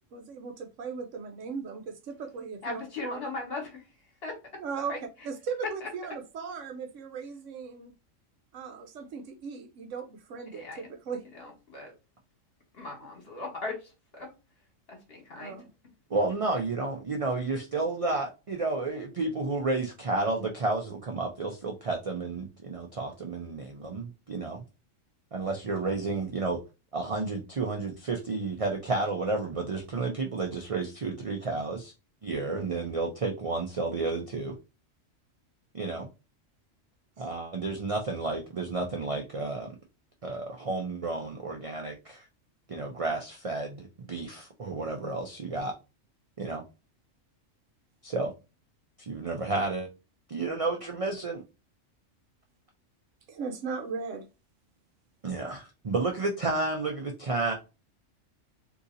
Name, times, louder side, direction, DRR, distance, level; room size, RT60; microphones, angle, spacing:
voice 1, 0.1-2.8 3.1-3.2 4.6-4.9 5.2-7.9 8.5-11.2 15.4-15.7 53.3-54.3, right 5 dB, 75° right, 1.0 m, -37 dB
voice 2, 2.6-4.6 4.9-5.3 5.8-5.9 10.5-10.9 11.3-11.9 12.7-14.3 14.9-15.6, left 3 dB, 50° left, 1.5 m, -39 dB
voice 3, 16.1-24.6 25.3-26.6 26.9-31.9 32.2-34.6 35.7-36.1 37.2-39.7 40.2-42.3 42.7-45.7 46.4-46.6 48.0-48.3 49.0-49.9 50.3-51.4 55.2-57.5, right 3 dB, 50° right, 0.4 m, -31 dB
2.8 x 2.7 x 3.7 m
omnidirectional pair, 1.4 m